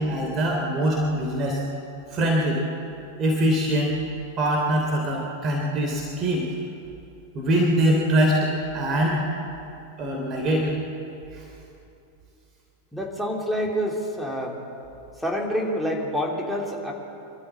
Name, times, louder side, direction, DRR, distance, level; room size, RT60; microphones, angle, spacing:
voice 1, 0.0-1.6 2.1-2.6 3.2-4.0 4.4-6.5 7.3-8.5 8.7-9.2 10.0-10.7 11.3-11.4, right 1 dB, 30° right, 0 dB, 3.0 m, -23 dB
voice 2, 12.9-14.6 15.2-16.9, equal, ahead, -1 dB, 3.3 m, -27 dB
24.0 x 13.5 x 8.9 m, 2.7 s
figure-of-eight pair, 90°, 0 cm